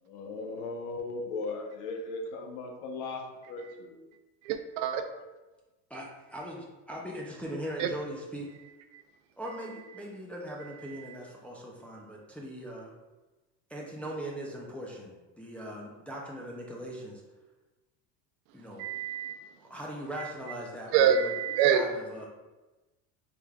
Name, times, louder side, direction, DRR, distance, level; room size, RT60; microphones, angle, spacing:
voice 1, 0.1-4.0, left 3 dB, 75° left, 3 dB, 0.9 m, -37 dB
voice 2, 4.5-5.0 7.8-7.9 18.8-19.3 20.9-21.8, right 8 dB, 65° right, 8 dB, 0.6 m, -25 dB
voice 3, 5.9-8.5 9.4-12.9 13.7-17.2 18.5-18.9 19.6-21.3 21.7-22.3, equal, 5° left, -3 dB, 0.5 m, -40 dB
4.9 x 3.3 x 2.3 m, 1.1 s
supercardioid pair, 120°, 40 cm